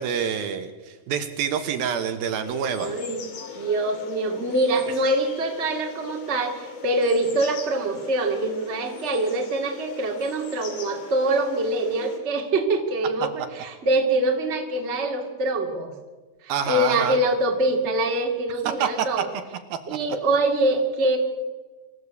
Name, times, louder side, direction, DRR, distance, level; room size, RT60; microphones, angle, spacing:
voice 1, 0.0-3.0 16.5-17.2 18.7-19.1, right 8 dB, 70° right, 8 dB, 2.9 m, -27 dB
sound 1, 2.4-12.2, left 6 dB, 60° left, 3.8 m, -39 dB
voice 2, 2.7-3.2 3.6-15.9 16.4-19.3 19.9-21.2, right 2 dB, 20° right, 3 dB, 2.0 m, -24 dB
25.0 x 15.0 x 8.3 m, 1.3 s
omnidirectional pair, 4.6 m